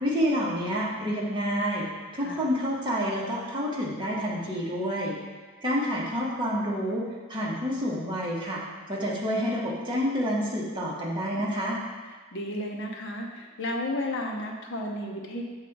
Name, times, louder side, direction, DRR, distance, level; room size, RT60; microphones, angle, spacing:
voice 1, 0.0-5.2 5.6-8.6 8.9-11.8, equal, 20° right, -5 dB, 1.3 m, -28 dB
voice 2, 12.3-15.4, left 1 dB, 60° left, 1 dB, 0.9 m, -33 dB
7.1 x 3.8 x 4.6 m, 1.4 s
head